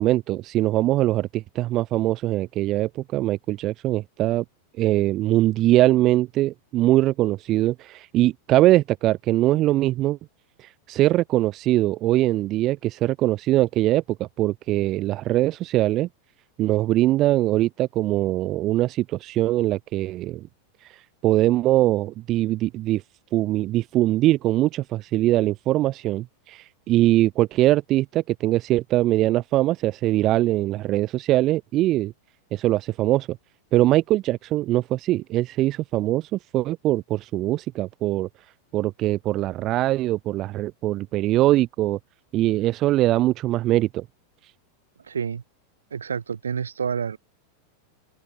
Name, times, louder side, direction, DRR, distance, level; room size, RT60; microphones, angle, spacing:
voice 1, 0.0-4.4 4.8-10.2 10.6-16.1 16.6-20.4 20.8-23.0 23.3-32.1 32.5-33.4 33.7-38.3 38.7-42.0 42.3-44.0, right 15 dB, 35° right, 0.7 m, -22 dB
voice 2, 45.1-45.4 45.9-47.2, right 7 dB, 70° right, 6.3 m, -28 dB
open air
figure-of-eight pair, 90°, 0 cm